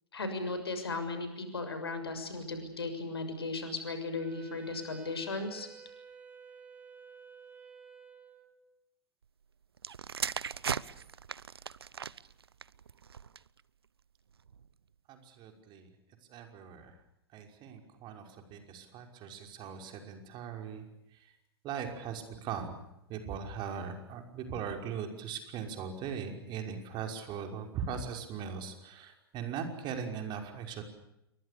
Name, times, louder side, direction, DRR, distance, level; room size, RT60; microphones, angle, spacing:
voice 1, 0.1-5.7, left 3 dB, 75° left, 8 dB, 6.6 m, -36 dB
Wind instrument woodwind instrument, 4.2-8.7, right 6 dB, 10° right, 3.2 m, -52 dB
sound 1, 9.8-13.6 14.4-14.7, right 7 dB, 75° right, 0.9 m, -38 dB
voice 2, 15.1-15.9 16.3-17.0 17.3-21.4 21.6-22.8 23.1-30.8, right 7 dB, 35° right, 4 dB, 5.7 m, -40 dB
29.5 x 23.5 x 6.9 m, 0.84 s
figure-of-eight pair, 95°, 13 cm